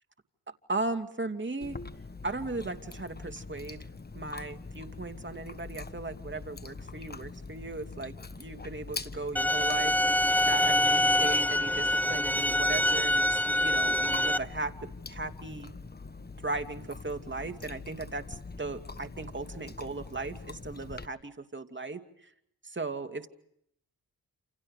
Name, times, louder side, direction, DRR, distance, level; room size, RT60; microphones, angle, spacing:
voice 1, 0.7-1.8 2.2-3.9 4.1-15.7 16.4-22.3 22.6-23.3, right 3 dB, 30° right, 7 dB, 2.7 m, -37 dB
Chewing mastication, 1.6-21.1, left 3 dB, 25° left, 1.3 m, -44 dB
sound 1, 9.4-14.4, left 1 dB, 5° left, 0.9 m, -25 dB
28.5 x 28.5 x 5.1 m, 0.74 s
cardioid pair, 50°, 37 cm